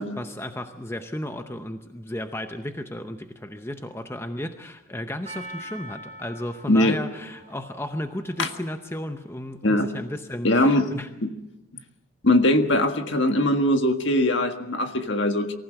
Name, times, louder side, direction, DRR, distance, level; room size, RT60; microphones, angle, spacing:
voice 1, 0.2-11.1, left 1 dB, 10° left, 7 dB, 0.7 m, -34 dB
Percussion, 5.3-9.6, right 1 dB, 30° right, 3.9 m, -44 dB
voice 2, 6.7-7.0 8.4-8.5 9.6-9.9 10.4-10.9 11.2-11.3 12.2-15.5, left 1 dB, 60° left, 6 dB, 1.7 m, -21 dB
23.5 x 15.5 x 7.7 m, 0.93 s
head